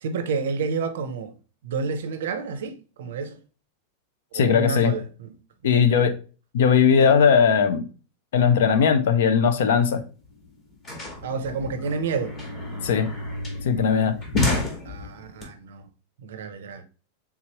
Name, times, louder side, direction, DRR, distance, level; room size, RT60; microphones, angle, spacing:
voice 1, 0.0-1.3 1.6-3.4 4.3-5.4 5.6-5.8 11.2-12.4 14.8-15.9 16.2-16.8, right 4 dB, 90° right, 0.6 m, -30 dB
voice 2, 4.3-4.9 5.6-6.1 6.5-7.8 8.3-10.0 12.8-13.1 13.6-14.1, left 6 dB, 75° left, 0.5 m, -18 dB
sound 1, 9.9-10.0 10.2-15.4, left 2 dB, 20° left, 1.0 m, -30 dB
3.5 x 3.0 x 2.9 m
supercardioid pair, 175°, 0 cm